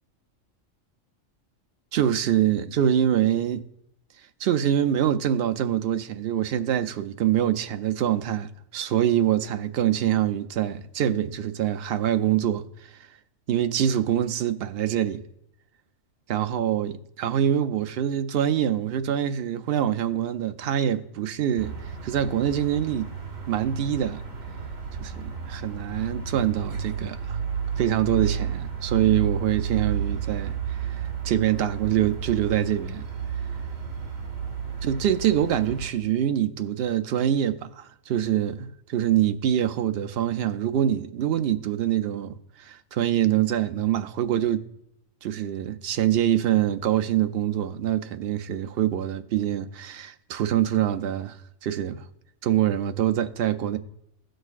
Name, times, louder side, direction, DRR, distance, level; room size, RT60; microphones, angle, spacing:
voice 1, 1.9-3.6 4.4-13.1 13.5-15.2 16.3-23.1 23.5-24.2 25.0-27.4 27.8-33.0 34.8-44.6 45.2-52.1 52.4-53.8, right 10 dB, 60° right, 0.7 m, -25 dB
sound 1, 21.6-35.9, right 7 dB, 85° right, 1.6 m, -32 dB
17.0 x 6.4 x 2.4 m
omnidirectional pair, 1.4 m